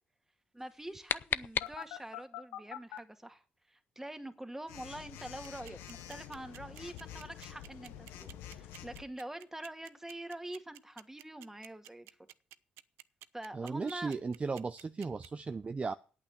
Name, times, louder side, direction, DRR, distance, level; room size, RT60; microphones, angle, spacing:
voice 1, 0.5-12.1 13.3-14.1, right 1 dB, 10° right, 1.9 m, -45 dB
sound 1, 0.6-2.3, left 9 dB, 60° left, 0.5 m, -37 dB
Telephone, 1.6-3.0 4.7-9.0, left 11 dB, 90° left, 1.1 m, -47 dB
sound 2, 5.2-15.3, right 16 dB, 85° right, 0.5 m, -51 dB
voice 2, 13.5-15.9, right 4 dB, 30° right, 0.6 m, -36 dB
8.8 x 8.6 x 8.2 m
supercardioid pair, 65°, 4 cm